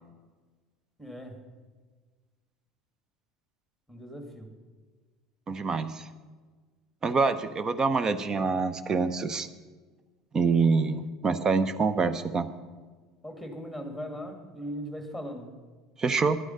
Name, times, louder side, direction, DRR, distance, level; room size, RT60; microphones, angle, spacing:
voice 1, 1.0-1.4 3.9-4.5 13.2-15.5, equal, 5° right, 5 dB, 2.2 m, -39 dB
voice 2, 5.5-6.1 7.0-9.5 10.3-12.5 16.0-16.4, right 4 dB, 25° right, 12 dB, 0.8 m, -26 dB
11.0 x 9.6 x 6.5 m, 1.4 s
figure-of-eight pair, 70°, 2 cm